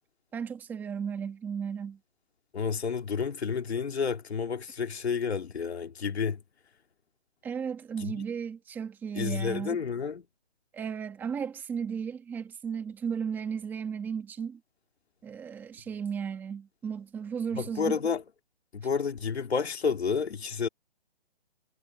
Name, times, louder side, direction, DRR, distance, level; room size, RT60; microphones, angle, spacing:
voice 1, 0.3-2.0 7.4-9.8 10.7-14.6 15.2-18.0, right 7 dB, 5° right, 1.8 m, -35 dB
voice 2, 2.5-6.4 8.0-8.2 9.2-10.2 17.5-18.2 18.7-20.7, left 6 dB, 75° left, 2.7 m, -30 dB
hypercardioid pair, 170°, 32 cm